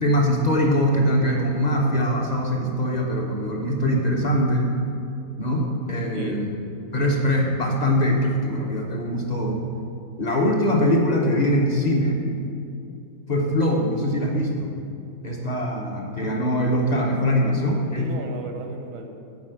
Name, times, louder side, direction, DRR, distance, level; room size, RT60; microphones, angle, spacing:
voice 1, 0.0-4.7 5.4-6.6 6.9-9.7 10.2-12.3 13.3-14.8 15.2-18.1, equal, 45° left, 0 dB, 0.5 m, -22 dB
voice 2, 6.1-6.5 17.9-19.1, right 3 dB, 90° right, 4 dB, 1.5 m, -36 dB
9.2 x 4.8 x 7.7 m, 2.6 s
omnidirectional pair, 1.9 m